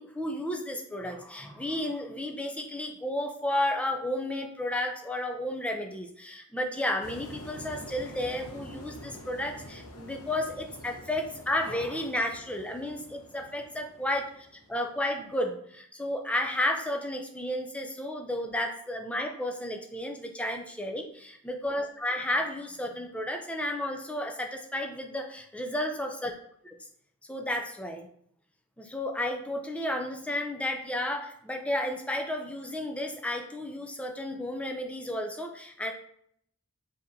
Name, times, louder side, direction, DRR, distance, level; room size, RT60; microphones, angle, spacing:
voice 1, 0.0-26.3 26.6-26.8 27.3-28.1 28.8-35.9, left 1 dB, 5° left, 3 dB, 0.4 m, -32 dB
sound 1, 7.0-15.3, left 1 dB, 80° left, 0.7 m, -47 dB
5.2 x 2.8 x 2.6 m, 0.68 s
head